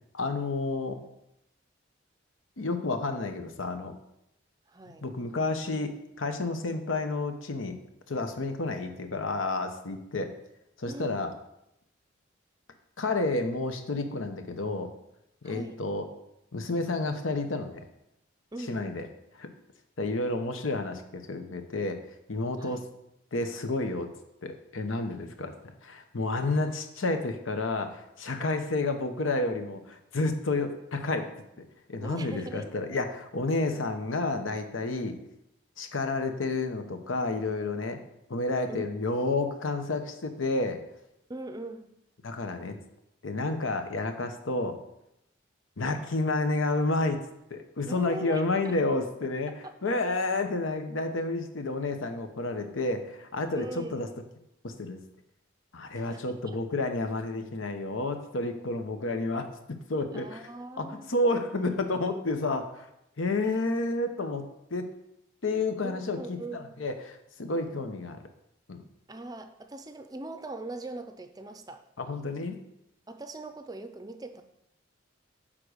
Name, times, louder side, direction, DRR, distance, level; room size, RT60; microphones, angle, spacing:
voice 1, 0.1-1.0 2.6-3.9 5.0-7.8 8.1-10.3 10.8-11.3 13.0-14.9 15.4-16.1 16.5-17.8 18.7-19.1 19.4-19.5 20.0-22.0 22.3-22.8 23.3-24.1 24.4-25.5 25.8-31.3 31.9-35.2 35.8-38.0 38.3-40.8 42.2-42.8 43.2-44.8 45.8-47.2 47.5-49.5 49.8-54.1 54.6-55.0 55.7-59.5 59.9-60.4 60.8-62.9 63.2-64.4 64.7-64.9 65.4-68.2 68.7-68.8 72.0-72.6, left 2 dB, 85° left, 7 dB, 0.9 m, -30 dB
voice 2, 4.7-5.0 10.9-11.2 15.4-15.8 18.5-19.2 22.6-22.8 26.4-26.5 32.0-33.0 38.7-38.9 41.3-41.9 47.8-48.8 49.6-49.7 53.6-54.0 55.9-56.4 60.1-61.1 65.8-66.8 69.1-71.8 73.1-74.4, right 2 dB, 20° right, 8 dB, 0.5 m, -41 dB
9.8 x 3.7 x 6.6 m, 0.83 s
head